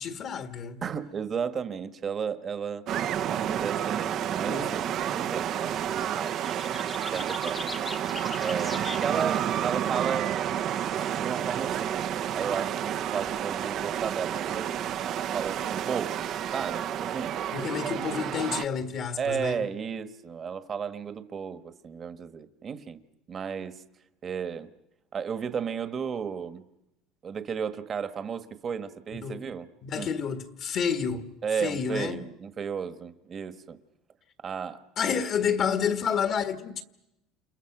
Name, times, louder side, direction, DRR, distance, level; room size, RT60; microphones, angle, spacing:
voice 1, 0.0-0.8 4.4-4.7 17.5-19.7 29.2-29.4 29.8-31.3 31.6-32.3 35.0-36.8, left 7 dB, 45° left, 1.6 m, -29 dB
voice 2, 0.8-2.8 3.3-6.9 7.1-7.7 8.4-10.3 11.1-14.7 15.0-17.3 19.2-23.0 23.3-23.8 24.2-24.7 25.1-26.6 27.2-29.7 29.9-30.2 31.4-33.8 34.4-35.2, right 6 dB, 35° right, 1.5 m, -34 dB
sound 1, 2.9-18.7, right 10 dB, 50° right, 0.9 m, -30 dB
sound 2, 5.7-10.5 10.8-11.6, left 3 dB, 15° left, 1.1 m, -42 dB
29.5 x 28.0 x 6.1 m
cardioid pair, 125°, 0 cm